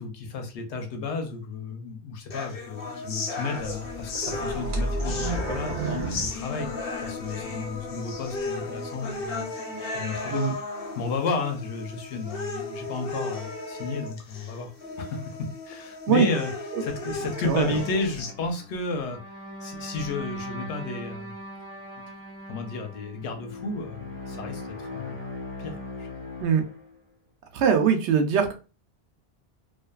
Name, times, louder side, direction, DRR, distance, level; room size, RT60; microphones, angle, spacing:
voice 1, 0.0-6.7 7.0-9.5 9.9-14.7 15.0-16.5 16.8-19.2 19.6-21.3 22.5-25.1 25.6-26.1, left 3 dB, 90° left, 0.9 m, -32 dB
sound 1, 2.3-18.3, left 3 dB, 65° left, 0.7 m, -35 dB
sound 2, 3.5-7.3 7.8-7.9 8.5-8.6, right 2 dB, 50° right, 0.8 m, -32 dB
voice 2, 17.4-17.7 26.4-26.6 27.5-28.5, right 6 dB, 80° right, 0.9 m, -22 dB
sound 3, 17.7-26.9, left 1 dB, 20° left, 0.4 m, -39 dB
2.5 x 2.3 x 2.2 m
omnidirectional pair, 1.1 m